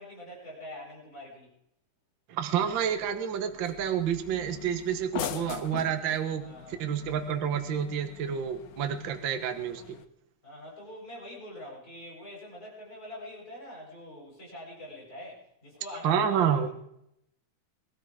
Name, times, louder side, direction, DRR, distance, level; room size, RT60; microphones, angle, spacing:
voice 1, 0.0-1.5 6.4-6.8 10.4-16.7, left 1 dB, 25° left, -3 dB, 8.1 m, -44 dB
voice 2, 2.3-6.4 6.7-10.0 16.0-16.7, right 8 dB, 50° right, 7 dB, 1.6 m, -29 dB
sound 1, 2.7-10.0, left 10 dB, 80° left, 2.4 m, -43 dB
22.5 x 13.0 x 5.0 m, 0.78 s
omnidirectional pair, 3.6 m